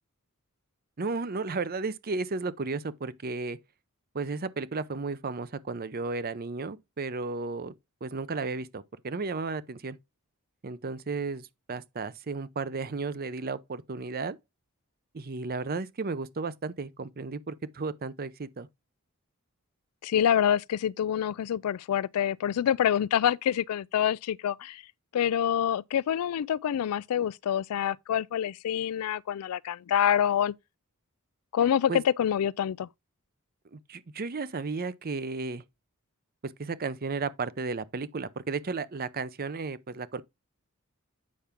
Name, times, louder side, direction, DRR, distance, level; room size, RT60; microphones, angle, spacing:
voice 1, 1.0-3.6 4.1-7.7 8.0-10.0 10.6-14.4 15.1-18.7 31.9-32.0 33.7-35.6 36.4-40.2, right 4 dB, 45° right, 0.6 m, -34 dB
voice 2, 20.0-24.8 25.1-30.5 31.5-32.9, left 9 dB, 80° left, 0.3 m, -26 dB
8.5 x 5.7 x 3.6 m
head